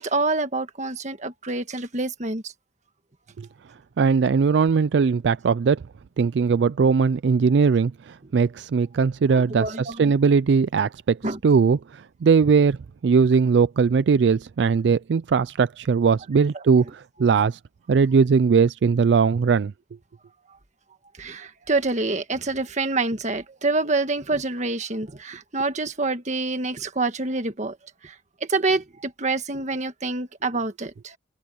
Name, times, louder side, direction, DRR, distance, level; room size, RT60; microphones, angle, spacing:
voice 1, 0.0-2.5 9.3-10.1 11.2-11.4 16.3-16.6 21.2-27.8 28.0-28.1 28.4-31.2, right 3 dB, 40° right, 1.6 m, -27 dB
voice 2, 4.0-5.8 6.2-12.8 13.0-17.6 17.9-19.7, right 5 dB, 75° right, 0.4 m, -20 dB
head